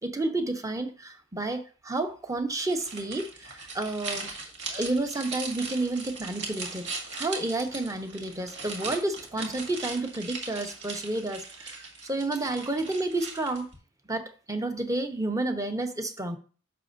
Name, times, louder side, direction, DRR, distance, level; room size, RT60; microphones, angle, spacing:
voice 1, 0.0-4.3 4.7-13.7 14.1-16.4, right 2 dB, 15° right, 0.8 m, -31 dB
sound 1, 2.6-13.8, right 3 dB, 60° right, 2.0 m, -39 dB
10.5 x 6.7 x 2.6 m
head